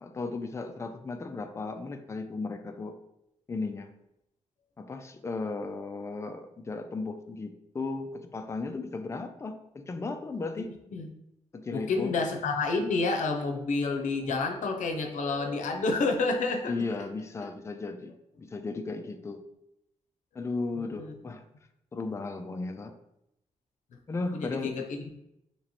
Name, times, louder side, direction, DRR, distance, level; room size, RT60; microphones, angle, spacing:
voice 1, 0.0-3.0 3.5-3.9 4.8-10.7 11.5-12.1 16.7-18.1 18.4-19.4 20.4-21.4 21.9-22.9 24.1-24.8, left 3 dB, 20° left, 7 dB, 0.3 m, -35 dB
voice 2, 11.7-16.8 20.4-20.5 20.8-21.1 24.3-25.1, left 3 dB, 85° left, 4 dB, 0.6 m, -29 dB
3.0 x 2.9 x 4.1 m, 0.83 s
wide cardioid pair, 155°, 13 cm